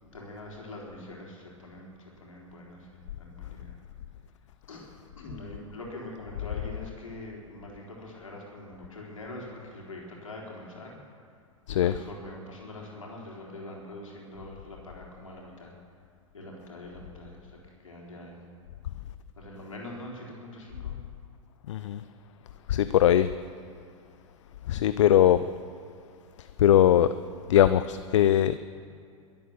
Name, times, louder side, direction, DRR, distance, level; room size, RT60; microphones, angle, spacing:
voice 1, 0.1-3.8 4.7-4.8 5.2-11.0 11.7-15.7 16.3-18.4 19.4-21.0, left 1 dB, 80° left, -2 dB, 4.0 m, -43 dB
voice 2, 21.7-22.0 22.7-23.3 24.7-25.5 26.6-27.1 27.5-28.6, left 11 dB, 65° left, 13 dB, 0.6 m, -20 dB
23.0 x 8.8 x 6.9 m, 2.4 s
figure-of-eight pair, 95°, 17 cm